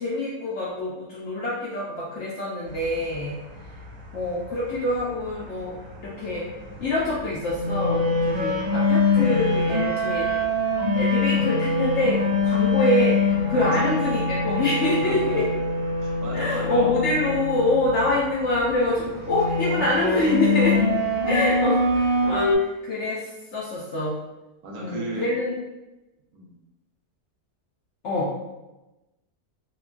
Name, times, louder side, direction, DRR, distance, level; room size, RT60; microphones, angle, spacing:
voice 1, 0.0-3.4 4.1-6.4 6.8-10.3 10.9-15.4 16.3-20.8 21.2-24.2 24.8-25.5 28.0-28.3, left 2 dB, 70° left, -6 dB, 0.7 m, -25 dB
sound 1, 2.7-22.6, left 2 dB, 50° right, 1.0 m, -24 dB
voice 2, 13.6-13.9 15.0-15.4 16.0-16.9 24.6-25.3 26.3-26.5, right 2 dB, 75° right, -2 dB, 1.1 m, -34 dB
2.9 x 2.2 x 2.4 m, 1.0 s
omnidirectional pair, 1.6 m